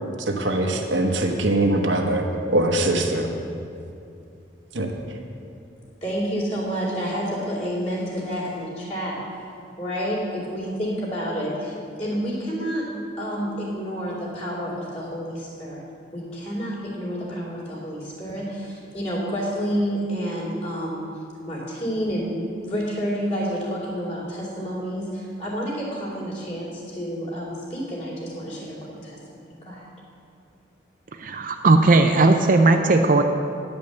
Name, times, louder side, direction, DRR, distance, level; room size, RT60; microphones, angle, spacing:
voice 1, 0.3-3.3 4.7-4.9, right 1 dB, 75° right, 2 dB, 1.1 m, -22 dB
voice 2, 6.0-9.2 9.8-12.9 13.2-15.8 16.1-21.1 21.4-29.2 29.5-29.9, equal, 35° left, -7 dB, 2.9 m, -29 dB
voice 3, 31.2-33.2, right 3 dB, 45° right, 5 dB, 0.5 m, -17 dB
10.0 x 5.3 x 8.0 m, 2.6 s
head